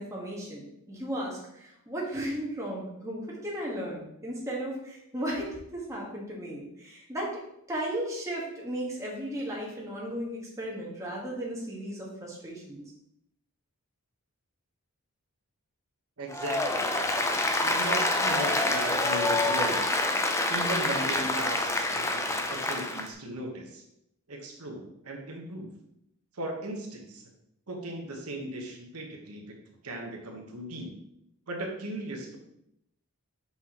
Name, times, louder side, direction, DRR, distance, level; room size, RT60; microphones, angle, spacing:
voice 1, 0.0-7.4 7.7-12.8, right 1 dB, 15° right, -4 dB, 1.4 m, -35 dB
voice 2, 16.2-16.9 17.6-19.8 20.5-23.8 24.3-25.7 26.3-27.2 27.7-29.6 29.8-31.0 31.5-32.4, right 1 dB, 70° right, 0 dB, 1.2 m, -37 dB
Applause, 16.3-23.1, left 2 dB, 15° left, 0.5 m, -27 dB
5.8 x 5.8 x 3.0 m, 0.78 s
head